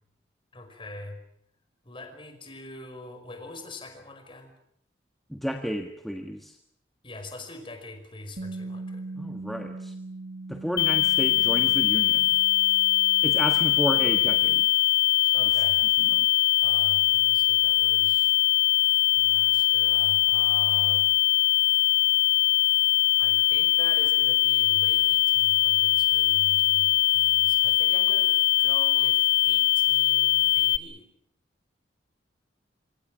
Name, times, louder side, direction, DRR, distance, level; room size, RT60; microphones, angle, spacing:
voice 1, 0.5-1.2 1.9-4.5 7.0-9.0 15.3-15.8 16.6-18.4 19.1-21.5 23.2-28.3 28.6-31.0, left 2 dB, 25° left, 6 dB, 5.2 m, -43 dB
voice 2, 5.3-6.6 9.1-9.9 10.5-12.4 13.2-14.7 16.0-16.3, equal, ahead, 4 dB, 1.4 m, -32 dB
Bass guitar, 8.4-14.6, right 2 dB, 55° right, 1.7 m, -41 dB
sound 1, 10.8-30.8, left 16 dB, 55° left, 1.0 m, -22 dB
26.5 x 25.5 x 6.3 m, 0.72 s
head